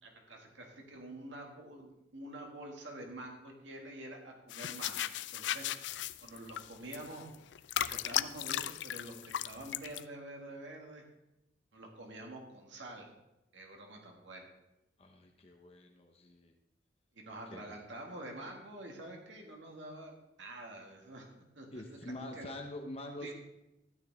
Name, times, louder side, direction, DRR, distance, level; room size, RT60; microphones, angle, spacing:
voice 1, 0.0-5.7 6.2-7.3 7.8-11.1 11.7-13.1 13.5-14.5 17.1-21.3 21.6-22.5 23.2-23.3, right 1 dB, 80° right, 1 dB, 1.9 m, -47 dB
sound 1, 4.5-10.0, left 12 dB, 70° left, 0.4 m, -36 dB
voice 2, 15.0-16.5 17.5-17.7 21.7-23.3, left 1 dB, 30° left, 3 dB, 0.9 m, -45 dB
13.0 x 9.0 x 3.5 m, 0.93 s
head